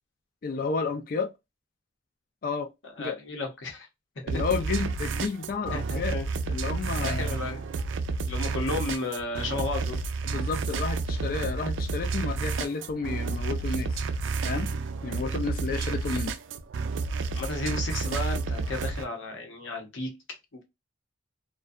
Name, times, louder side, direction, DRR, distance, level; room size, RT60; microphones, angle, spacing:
voice 1, 0.4-1.3 2.4-2.7 3.0-3.2 4.2-6.2 6.5-7.4 10.2-14.0 14.4-16.3, left 4 dB, 50° left, 0.3 m, -31 dB
voice 2, 3.0-3.9 5.7-6.3 7.0-7.7 8.2-10.0 16.1-16.2 17.3-20.1 20.5-20.6, left 2 dB, 80° left, 0.8 m, -33 dB
sound 1, 4.3-19.0, right 4 dB, 85° right, 0.4 m, -30 dB
2.6 x 2.2 x 2.3 m
head